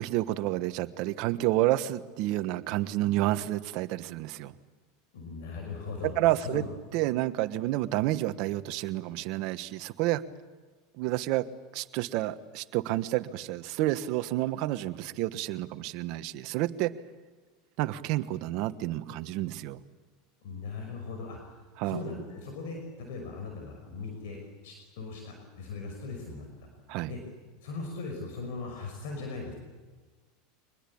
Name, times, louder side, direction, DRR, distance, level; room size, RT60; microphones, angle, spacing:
voice 1, 0.0-4.5 6.0-6.6 6.9-10.2 10.9-11.5 11.7-16.9 17.8-19.8 21.8-22.0 26.9-27.1, right 16 dB, 60° right, 12 dB, 1.3 m, -29 dB
voice 2, 5.1-6.7 20.4-26.5 27.1-27.2 27.6-29.5, left 4 dB, 75° left, 3 dB, 5.8 m, -39 dB
24.5 x 21.0 x 8.7 m, 1.3 s
supercardioid pair, 115°, 0 cm